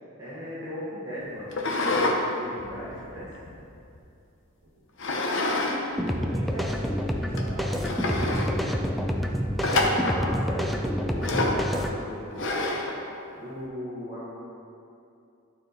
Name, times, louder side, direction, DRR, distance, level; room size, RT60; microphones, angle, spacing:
voice 1, 0.2-3.3 9.7-12.5 13.3-14.3, equal, 15° right, -12 dB, 1.5 m, -38 dB
sound 1, 1.5-2.2 2.6-4.0 5.0-5.8 6.1-6.2 6.9-7.0 7.4-7.5 7.8-8.5 9.6-10.2 11.2-11.6 12.4-13.0, left 2 dB, 60° left, 0.8 m, -27 dB
voice 2, 5.2-8.9 9.9-10.5, equal, 75° right, -7 dB, 1.3 m, -40 dB
sound 2, 6.0-12.0, equal, ahead, 0.4 m, -28 dB
12.0 x 4.4 x 4.0 m, 2.6 s
head